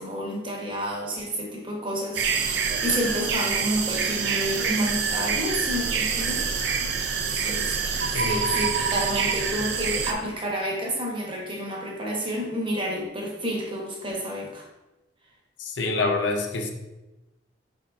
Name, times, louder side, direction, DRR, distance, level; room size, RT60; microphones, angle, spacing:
voice 1, 0.0-6.9 7.3-7.8 8.1-14.7, equal, 25° right, -1 dB, 0.9 m, -30 dB
sound 1, 2.1-10.1, right 5 dB, 70° right, 0.4 m, -26 dB
voice 2, 8.1-8.5 15.6-16.7, left 3 dB, 80° left, 3 dB, 0.6 m, -26 dB
5.4 x 3.6 x 2.5 m, 1.0 s
head